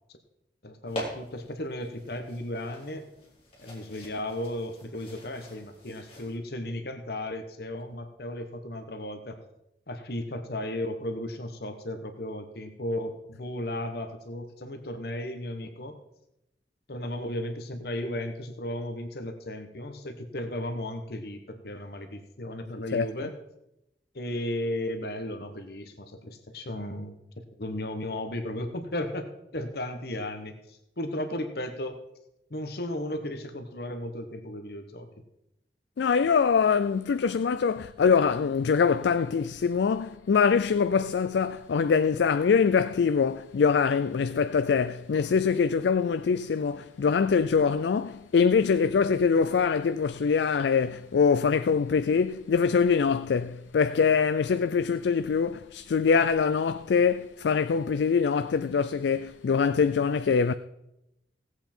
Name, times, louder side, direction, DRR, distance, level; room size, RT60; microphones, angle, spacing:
voice 1, 0.6-3.1 3.6-9.4 9.9-16.0 16.9-23.4 24.1-29.3 29.5-32.0 32.5-35.1, left 1 dB, 60° left, 1.1 m, -35 dB
sound 1, 0.9-6.4, equal, 30° left, 3.2 m, -44 dB
voice 2, 36.0-60.5, left 6 dB, 75° left, 0.4 m, -24 dB
17.0 x 8.0 x 4.4 m
head